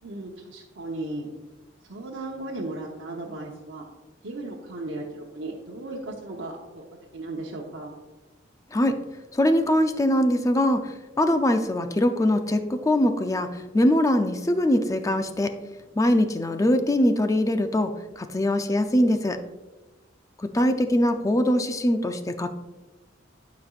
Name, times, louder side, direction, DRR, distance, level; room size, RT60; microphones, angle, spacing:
voice 1, 0.0-1.3 1.9-3.8 4.2-6.8 7.1-7.9, right 2 dB, 70° right, -2 dB, 0.9 m, -36 dB
voice 2, 8.7-9.0 9.3-15.6 15.9-19.4 20.4-22.5, left 1 dB, 15° left, 8 dB, 0.4 m, -22 dB
11.5 x 5.1 x 2.4 m, 1.1 s
head